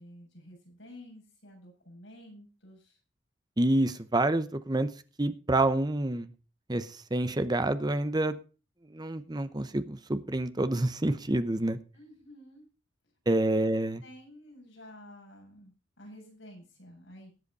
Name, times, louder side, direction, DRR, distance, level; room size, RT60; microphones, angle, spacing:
voice 1, 0.0-3.0 11.9-12.7 13.3-13.4 13.6-13.7 14.0-17.3, left 1 dB, 75° left, 0 dB, 7.1 m, -51 dB
voice 2, 3.6-4.9 5.2-6.3 6.7-8.4 8.9-11.8 13.3-14.0, right 1 dB, 20° right, 12 dB, 0.8 m, -28 dB
18.5 x 8.0 x 4.2 m, 0.33 s
head